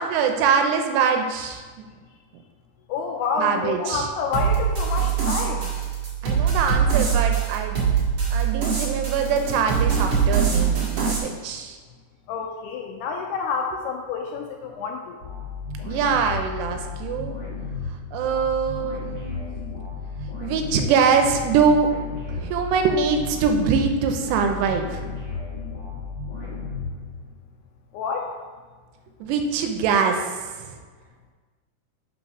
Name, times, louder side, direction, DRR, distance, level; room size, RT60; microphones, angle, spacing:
voice 1, 0.0-1.9 3.4-4.1 6.2-8.0 8.3-11.8 15.9-17.3 18.1-19.5 20.4-21.9 22.3-25.1 29.2-30.8, right 6 dB, 80° right, 5 dB, 2.6 m, -23 dB
voice 2, 2.9-5.7 12.3-15.2 27.9-28.3, left 5 dB, 85° left, 2 dB, 2.4 m, -28 dB
sound 1, 4.3-11.2, right 7 dB, 55° right, 1.3 m, -23 dB
sound 2, 15.2-27.5, left 4 dB, 55° left, 1.3 m, -34 dB
6.2 x 5.5 x 6.0 m, 1.5 s
omnidirectional pair, 5.1 m